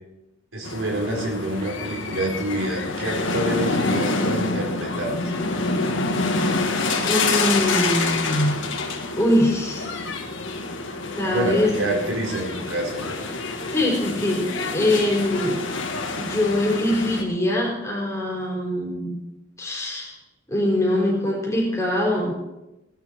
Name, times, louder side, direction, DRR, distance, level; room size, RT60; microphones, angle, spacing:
voice 1, 0.5-5.2 11.3-13.1, right 1 dB, 85° right, -1 dB, 4.2 m, -27 dB
sound 1, 0.6-17.2, left 3 dB, 70° left, 1.9 m, -27 dB
voice 2, 7.0-8.6 9.2-9.9 11.2-11.7 13.7-15.6 16.2-19.2 19.6-20.1 20.5-22.3, left 1 dB, 15° left, -3 dB, 4.6 m, -23 dB
18.5 x 10.5 x 4.7 m, 0.96 s
head